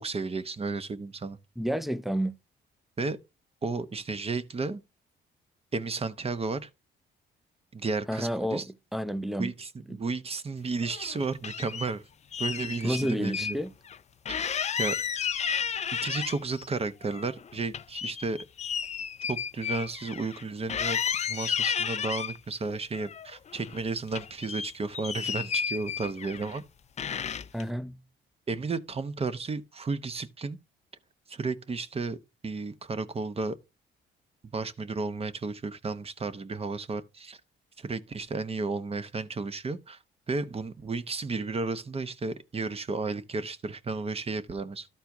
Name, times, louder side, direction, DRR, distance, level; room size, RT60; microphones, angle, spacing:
voice 1, 0.0-1.4 3.0-3.2 3.6-4.8 5.7-6.7 7.7-8.7 9.4-12.0 12.4-13.6 14.3-15.0 16.0-18.4 19.3-21.0 21.3-26.6 28.5-30.6 31.3-32.2 32.4-33.6 34.5-37.4 37.8-40.0 40.3-44.9, right 3 dB, 30° right, 0.9 m, -33 dB
voice 2, 1.6-2.4 8.1-8.6 8.9-9.5 9.9-10.0 12.8-13.7 27.5-28.0, equal, ahead, 0.7 m, -30 dB
sound 1, 10.8-11.9 12.3-13.5 13.9-14.0 14.3-16.7 17.0-20.4 20.7-22.4 22.9-23.8 24.1-26.6 27.0-27.6, left 7 dB, 35° left, 0.4 m, -32 dB
13.0 x 4.4 x 3.5 m
cardioid pair, 90°, 20 cm